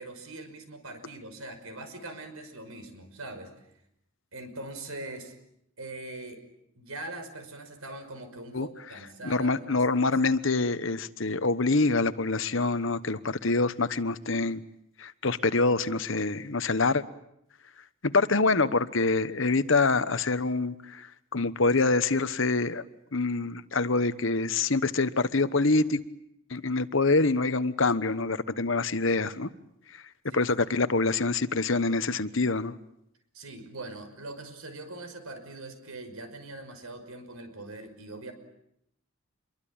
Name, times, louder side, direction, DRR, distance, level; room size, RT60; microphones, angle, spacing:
voice 1, 0.0-3.5 4.3-5.3 5.8-6.4 6.8-10.2 30.3-30.5 33.3-38.3, right 2 dB, 85° right, 8 dB, 5.7 m, -42 dB
voice 2, 9.2-14.6 15.0-17.0 18.0-22.8 23.1-26.0 26.5-29.5 29.9-30.0 30.3-32.7, left 3 dB, 65° left, 13 dB, 1.2 m, -26 dB
27.0 x 23.0 x 8.8 m, 0.76 s
head